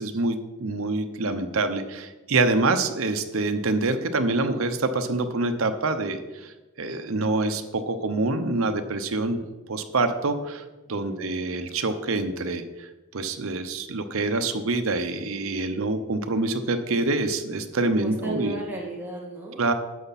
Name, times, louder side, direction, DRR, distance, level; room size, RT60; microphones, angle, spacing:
voice 1, 0.0-9.4 9.7-10.6 10.9-18.6 19.6-19.7, right 3 dB, 75° right, 7 dB, 0.8 m, -26 dB
voice 2, 11.0-11.4 17.9-19.6, right 2 dB, 10° right, -4 dB, 2.0 m, -35 dB
11.0 x 7.0 x 4.1 m, 1.1 s
head